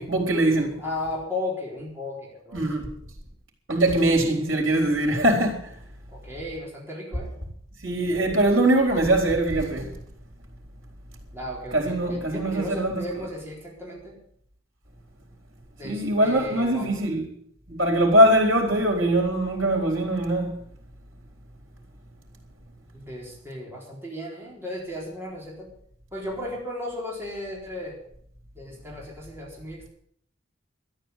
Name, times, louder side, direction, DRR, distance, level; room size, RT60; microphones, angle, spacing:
voice 1, 0.0-0.8 2.5-2.9 3.7-5.7 7.8-9.9 11.7-13.3 15.8-17.3 17.7-20.6, right 1 dB, 90° right, 4.1 m, -22 dB
voice 2, 0.8-2.6 6.1-7.3 11.3-14.2 15.8-16.9 22.9-25.7 26.1-28.0 28.6-29.9, left 1 dB, 10° right, 4.1 m, -35 dB
13.0 x 10.5 x 8.2 m
head